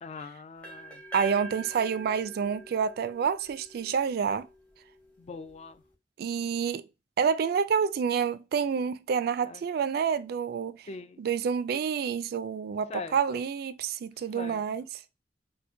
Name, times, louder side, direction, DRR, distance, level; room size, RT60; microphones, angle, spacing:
voice 1, 0.0-1.0 5.2-5.8 9.4-9.6 10.9-11.2 12.9-13.4 14.3-14.6, left 4 dB, 35° left, 0.3 m, -42 dB
sound 1, 0.6-4.5, right 2 dB, 10° left, 0.8 m, -44 dB
voice 2, 1.1-4.5 6.2-6.8 7.2-10.8 11.2-14.9, right 6 dB, 60° right, 0.3 m, -28 dB
4.3 x 2.1 x 2.6 m
head